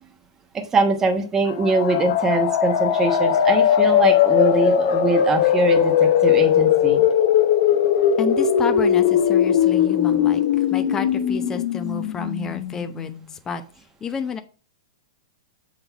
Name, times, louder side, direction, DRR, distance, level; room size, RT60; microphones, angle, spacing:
voice 1, 0.5-7.0, right 3 dB, 20° right, 4 dB, 1.1 m, -22 dB
sound 1, 1.5-13.2, left 9 dB, 55° left, 0.8 m, -19 dB
voice 2, 8.2-10.4 10.7-13.1 13.5-13.6 14.0-14.4, left 5 dB, 20° left, 8 dB, 0.7 m, -30 dB
6.8 x 4.0 x 4.4 m, 0.39 s
hypercardioid pair, 125°, 3 cm